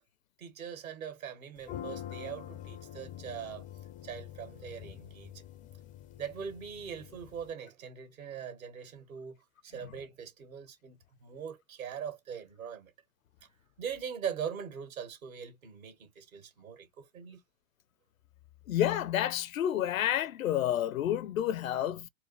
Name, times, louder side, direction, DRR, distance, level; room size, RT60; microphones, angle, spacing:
voice 1, 0.4-3.7 4.0-5.4 6.2-9.4 9.6-12.9 13.8-17.4, right 7 dB, 75° right, 2.0 m, -41 dB
sound 1, 1.6-7.5, left 11 dB, 20° left, 0.4 m, -46 dB
voice 2, 18.7-22.1, left 11 dB, 70° left, 0.6 m, -29 dB
4.4 x 2.0 x 3.2 m
figure-of-eight pair, 95°, 42 cm